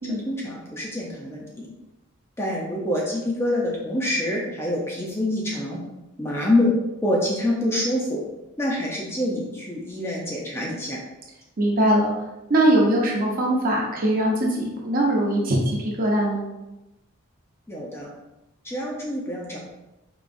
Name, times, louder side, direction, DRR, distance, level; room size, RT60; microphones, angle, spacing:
voice 1, 0.1-1.7 2.4-5.8 6.2-6.7 7.0-8.2 8.6-11.0 17.7-18.1 18.6-19.6, left 1 dB, 10° left, -3 dB, 0.5 m, -26 dB
voice 2, 11.6-12.1 12.5-16.4, right 1 dB, 40° right, -3 dB, 0.8 m, -21 dB
4.7 x 2.9 x 2.6 m, 0.97 s
head